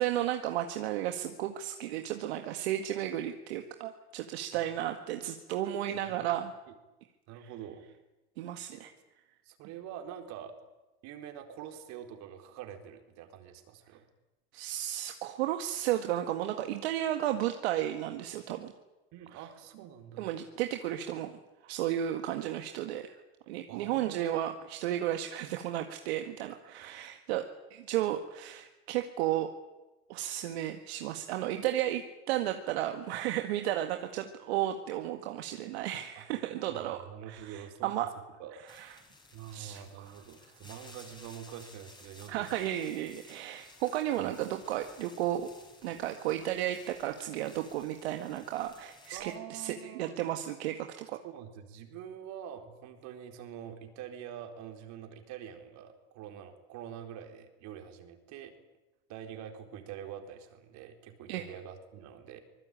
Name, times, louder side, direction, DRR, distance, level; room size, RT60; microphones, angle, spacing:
voice 1, 0.0-6.5 7.4-7.5 8.4-8.9 14.5-18.7 19.3-19.4 20.2-23.1 23.5-29.5 30.1-37.0 37.3-38.1 38.7-38.9 39.5-39.8 42.3-45.5 45.8-51.2 61.3-61.5, right 12 dB, 80° right, 5 dB, 1.9 m, -33 dB
voice 2, 4.5-5.0 5.6-6.3 7.3-7.8 8.7-8.8 9.5-10.5 11.0-14.1 19.1-20.3 23.7-24.7 26.8-26.9 36.2-36.3 36.5-37.9 38.4-38.6 39.3-42.6 44.2-44.3 49.1-50.2 51.2-58.5 59.1-62.4, right 9 dB, 60° right, 5 dB, 4.3 m, -46 dB
sound 1, 38.7-49.4, left 2 dB, 15° left, 5.9 m, -56 dB
25.0 x 20.0 x 9.1 m, 1.1 s
supercardioid pair, 100°, 31 cm